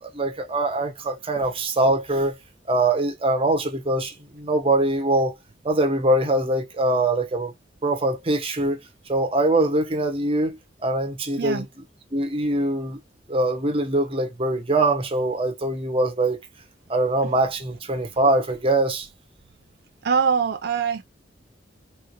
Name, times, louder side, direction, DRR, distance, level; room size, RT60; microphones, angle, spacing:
voice 1, 0.0-2.4 2.7-5.3 5.6-7.5 7.8-8.8 9.1-11.6 12.1-13.0 13.3-16.4 16.9-19.1, right 2 dB, 30° right, 0.9 m, -23 dB
voice 2, 20.0-21.0, right 6 dB, 60° right, 0.4 m, -23 dB
3.7 x 2.4 x 2.9 m
head